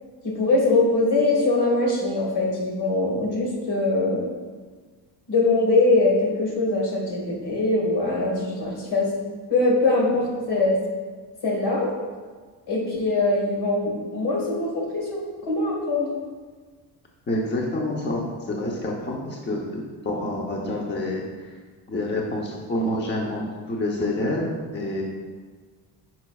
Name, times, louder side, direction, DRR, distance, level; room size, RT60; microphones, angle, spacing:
voice 1, 0.2-4.3 5.3-9.1 9.5-10.8 11.4-11.9 12.7-16.1, left 2 dB, 65° left, -1 dB, 1.9 m, -22 dB
voice 2, 17.3-21.5 21.9-23.4 23.7-25.0, left 1 dB, 25° left, -1 dB, 0.8 m, -28 dB
9.0 x 5.9 x 2.4 m, 1.5 s
cardioid pair, 120°, 43 cm